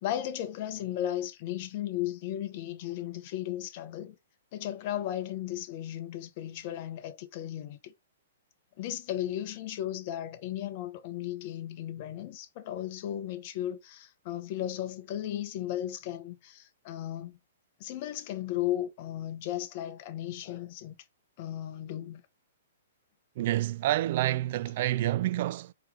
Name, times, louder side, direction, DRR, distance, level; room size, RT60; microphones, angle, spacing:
voice 1, 0.0-4.2 4.5-7.9 8.8-17.4 17.8-21.0 21.4-22.2, left 12 dB, 45° left, 1.0 m, -35 dB
voice 2, 23.4-25.7, right 14 dB, 55° right, 0.3 m, -28 dB
4.5 x 3.1 x 3.6 m
hypercardioid pair, 135°, 0 cm